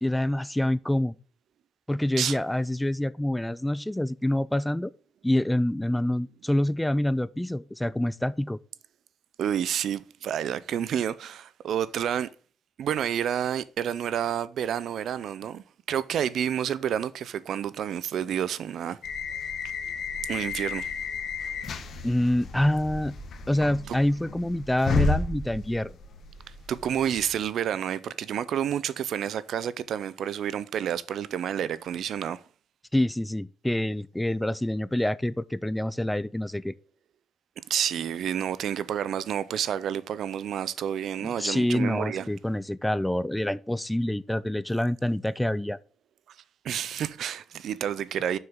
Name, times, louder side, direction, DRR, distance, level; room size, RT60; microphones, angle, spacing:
voice 1, 0.0-1.1 1.9-4.9 5.2-8.6 22.0-23.1 23.5-25.9 32.9-36.7 41.2-45.8, left 1 dB, 5° left, 0.4 m, -26 dB
voice 2, 9.4-12.3 12.8-19.0 20.3-20.9 23.9-24.0 26.7-32.4 37.7-42.3 46.6-48.4, right 9 dB, 70° right, 0.5 m, -29 dB
sound 1, 19.0-27.4, left 4 dB, 60° left, 1.3 m, -33 dB
6.9 x 6.5 x 3.6 m
cardioid pair, 90°, 0 cm